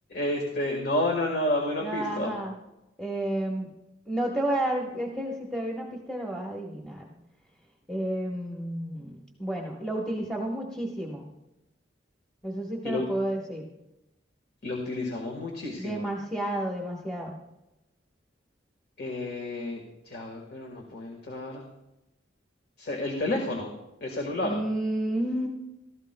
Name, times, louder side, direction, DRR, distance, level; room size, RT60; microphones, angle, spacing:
voice 1, 0.1-2.3 12.8-13.1 14.6-16.1 19.0-21.6 22.8-23.7 24.0-24.6, left 1 dB, 55° left, 1 dB, 1.5 m, -30 dB
voice 2, 1.8-2.6 3.0-3.7 4.1-7.1 7.9-11.3 12.4-13.7 15.8-17.3 24.4-25.5, right 1 dB, 5° left, -2 dB, 1.1 m, -31 dB
16.0 x 14.0 x 2.2 m, 0.95 s
head